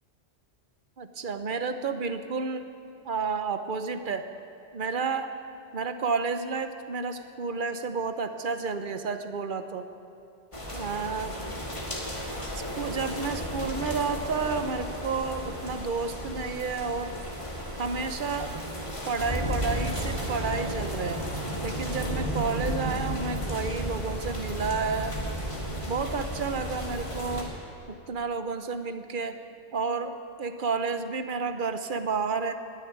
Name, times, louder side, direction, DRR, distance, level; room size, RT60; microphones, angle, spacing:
voice 1, 1.0-2.7 3.1-4.3 4.7-5.3 5.7-9.8 10.7-11.4 12.5-17.1 17.8-18.5 19.0-21.2 21.6-25.2 25.9-27.5 27.9-29.4 29.7-32.5, right 4 dB, 45° right, 9 dB, 0.9 m, -31 dB
sound 1, 10.5-27.4, equal, 25° left, 2.3 m, -33 dB
20.0 x 7.1 x 9.4 m, 2.6 s
omnidirectional pair, 1.2 m